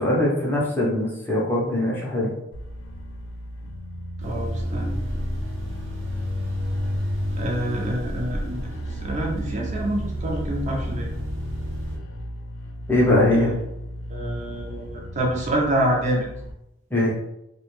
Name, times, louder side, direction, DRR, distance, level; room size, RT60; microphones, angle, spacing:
voice 1, 0.0-2.3 12.9-13.5 16.9-17.1, left 1 dB, 10° left, -5 dB, 0.6 m, -21 dB
sound 1, 2.5-16.5, left 1 dB, 75° left, 0.4 m, -37 dB
voice 2, 4.2-5.0 7.4-8.7 9.0-11.1 13.3-13.5 14.1-16.3, right 1 dB, 40° right, -1 dB, 0.4 m, -27 dB
sound 2, 4.2-12.0, equal, 85° right, 0.6 m, -30 dB
2.2 x 2.1 x 3.0 m, 0.86 s
head